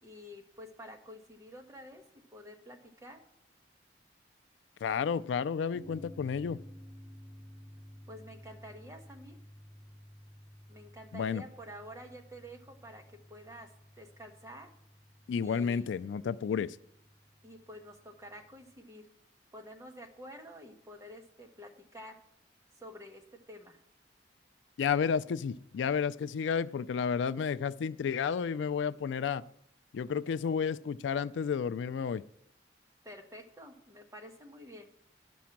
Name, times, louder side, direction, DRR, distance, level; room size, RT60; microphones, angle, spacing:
voice 1, 0.0-2.0 2.3-3.2 8.1-9.4 10.7-13.7 14.0-14.7 15.4-15.9 17.4-19.1 19.5-22.2 22.8-23.8 33.0-34.8, equal, 15° right, 3 dB, 1.0 m, -49 dB
voice 2, 4.8-6.6 11.1-11.4 15.3-16.8 24.8-29.4 29.9-32.2, left 6 dB, 85° left, 16 dB, 0.3 m, -31 dB
sound 1, 5.7-18.7, equal, 30° left, 2.2 m, -54 dB
11.5 x 6.2 x 5.8 m, 0.76 s
head